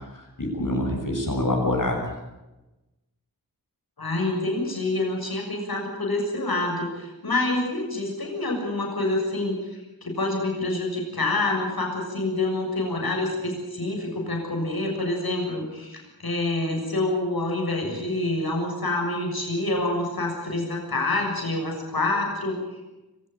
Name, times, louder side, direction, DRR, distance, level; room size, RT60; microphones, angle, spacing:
voice 1, 0.1-2.2, left 1 dB, 60° left, 2 dB, 6.9 m, -26 dB
voice 2, 4.0-22.6, left 2 dB, 75° left, 1 dB, 7.0 m, -27 dB
25.0 x 17.5 x 9.1 m, 1.0 s
wide cardioid pair, 65°, 36 cm